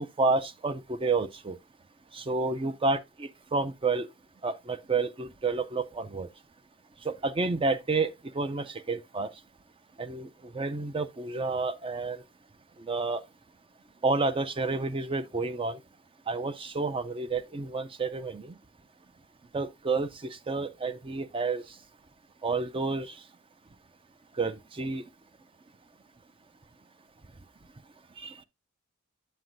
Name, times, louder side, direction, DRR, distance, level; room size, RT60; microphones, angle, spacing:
voice 1, 0.0-1.6 2.1-4.1 4.4-6.3 7.0-9.3 10.0-10.3 10.5-12.2 12.8-13.2 14.0-15.8 16.3-18.6 19.5-21.6 22.4-23.1 24.4-25.0 28.2-28.4, right 3 dB, 25° right, 0.5 m, -30 dB
7.7 x 7.7 x 2.6 m
head